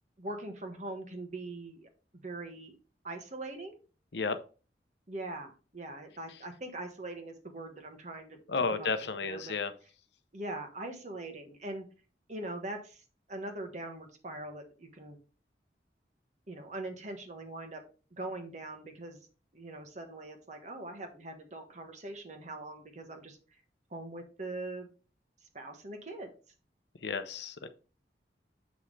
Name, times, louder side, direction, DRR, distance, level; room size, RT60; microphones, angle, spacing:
voice 1, 0.2-2.7 3.0-3.8 5.1-8.4 8.7-8.9 9.2-9.6 10.3-11.9 12.3-13.0 13.3-15.2 16.5-17.8 18.1-19.3 19.5-23.4 23.9-24.9 25.5-26.3, right 2 dB, 40° right, 5 dB, 1.4 m, -42 dB
voice 2, 8.5-9.7 27.0-27.7, left 4 dB, 75° left, 10 dB, 0.8 m, -32 dB
7.4 x 5.8 x 3.3 m, 0.35 s
head